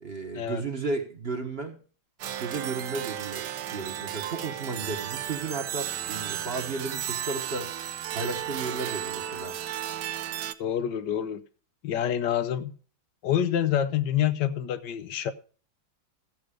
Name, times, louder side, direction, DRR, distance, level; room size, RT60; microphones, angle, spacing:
voice 1, 0.0-1.8 2.4-7.7 8.1-9.5, right 3 dB, 35° right, 1.3 m, -34 dB
sound 1, 2.2-10.5, right 11 dB, 65° right, 1.3 m, -34 dB
voice 2, 10.6-11.4 11.8-12.7 13.2-15.3, left 10 dB, 65° left, 1.4 m, -27 dB
14.0 x 7.9 x 4.9 m
omnidirectional pair, 2.1 m